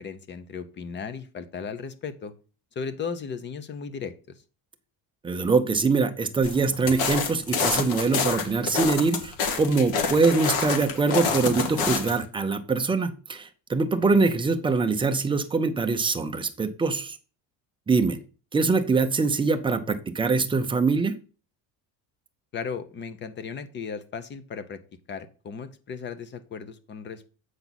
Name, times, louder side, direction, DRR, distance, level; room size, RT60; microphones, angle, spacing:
voice 1, 0.0-2.3 2.8-4.1 22.5-24.8 25.1-27.3, left 6 dB, 25° left, 13 dB, 0.7 m, -36 dB
voice 2, 5.2-17.2 17.9-18.2 18.5-21.1, right 4 dB, 10° right, 7 dB, 0.5 m, -23 dB
sound 1, 6.4-12.2, left 5 dB, 55° left, 1.5 m, -27 dB
8.0 x 5.9 x 4.0 m, 0.37 s
cardioid pair, 170°, 42 cm